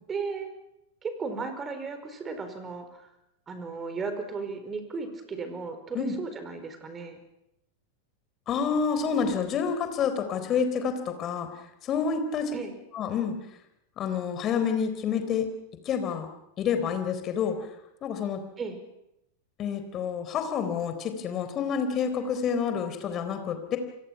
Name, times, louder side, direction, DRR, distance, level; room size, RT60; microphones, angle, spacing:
voice 1, 0.1-0.5 1.0-3.1 3.5-7.2 12.5-12.7 18.6-18.8, right 4 dB, 20° right, 8 dB, 4.5 m, -35 dB
voice 2, 8.5-11.5 11.8-12.6 12.9-13.3 14.0-15.5 15.9-16.3 16.6-17.6 18.0-18.4 19.6-23.8, left 6 dB, 30° left, 8 dB, 3.9 m, -28 dB
29.0 x 24.0 x 6.0 m, 0.85 s
figure-of-eight pair, 90°, 0 cm